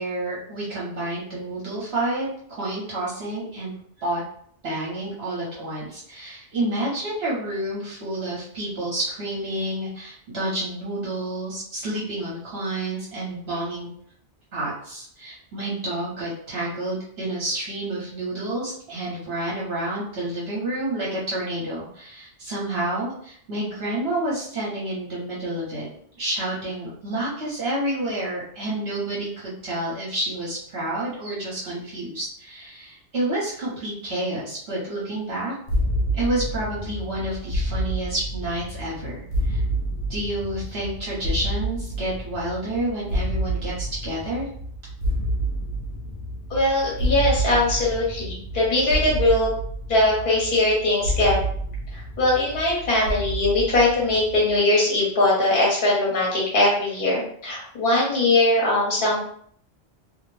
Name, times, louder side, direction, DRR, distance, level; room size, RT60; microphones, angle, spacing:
voice 1, 0.0-3.7 4.0-4.2 4.6-13.9 14.5-25.9 26.2-35.5 36.1-39.6 40.1-44.5, right 1 dB, 60° right, -6 dB, 1.0 m, -29 dB
sound 1, 35.7-54.6, right 1 dB, 85° left, 0.9 m, -29 dB
voice 2, 46.5-49.5 49.9-51.4 51.9-59.2, left 2 dB, 50° left, -5 dB, 1.1 m, -21 dB
2.4 x 2.0 x 3.1 m, 0.62 s
omnidirectional pair, 1.2 m